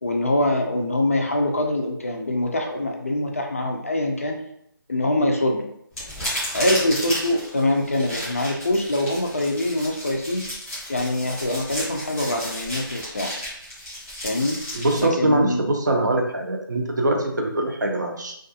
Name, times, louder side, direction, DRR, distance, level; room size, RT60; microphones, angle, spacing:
voice 1, 0.0-4.4 4.9-5.7 6.5-10.5 10.9-13.3 14.2-14.6 15.0-15.6, left 1 dB, 40° left, 2 dB, 0.4 m, -24 dB
sound 1, 5.9-15.0, left 1 dB, ahead, 0.8 m, -33 dB
voice 2, 14.7-18.3, right 1 dB, 55° right, 2 dB, 0.5 m, -23 dB
2.3 x 2.3 x 2.6 m, 0.72 s
figure-of-eight pair, 170°, 12 cm